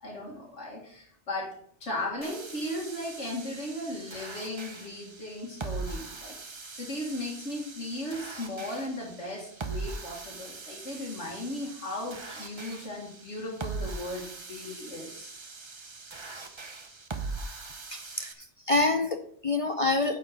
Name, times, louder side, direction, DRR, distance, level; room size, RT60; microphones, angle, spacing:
voice 1, 0.0-6.4 6.7-15.3, left 1 dB, 90° left, -2 dB, 2.1 m, -36 dB
sound 1, 2.2-18.3, right 3 dB, 30° right, 0.8 m, -41 dB
voice 2, 17.9-20.2, left 2 dB, 40° left, 7 dB, 0.6 m, -27 dB
9.8 x 4.5 x 6.3 m, 0.64 s
omnidirectional pair, 1.2 m